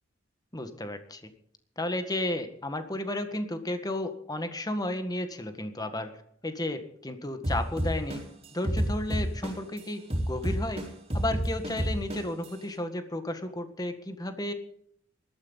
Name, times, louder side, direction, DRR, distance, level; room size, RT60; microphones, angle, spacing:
voice 1, 0.5-1.3 1.8-6.1 6.4-8.2 8.5-10.8 11.1-14.5, left 1 dB, 20° left, 8 dB, 1.7 m, -33 dB
sound 1, 7.4-9.8 10.1-12.5, right 1 dB, 30° right, 4.2 m, -29 dB
20.0 x 13.5 x 4.1 m, 0.69 s
head